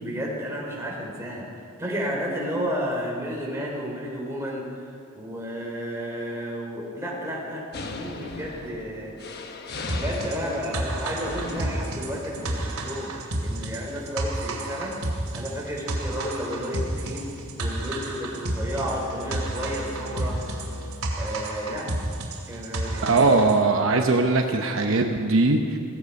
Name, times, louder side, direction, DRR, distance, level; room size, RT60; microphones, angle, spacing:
voice 1, 0.0-1.5 1.8-9.1 9.9-13.1 13.4-14.9 15.3-17.3 17.6-20.4 21.2-21.9 22.5-23.2, equal, 15° right, -3 dB, 3.6 m, -32 dB
sound 1, 7.7-18.5, left 2 dB, 50° left, 1.1 m, -41 dB
sound 2, 9.9-23.6, right 1 dB, 85° right, 2.5 m, -31 dB
sound 3, 18.7-21.7, left 1 dB, 85° left, 1.3 m, -38 dB
voice 2, 23.0-25.8, right 3 dB, 65° right, 4 dB, 0.9 m, -20 dB
17.0 x 15.0 x 5.4 m, 2.4 s
head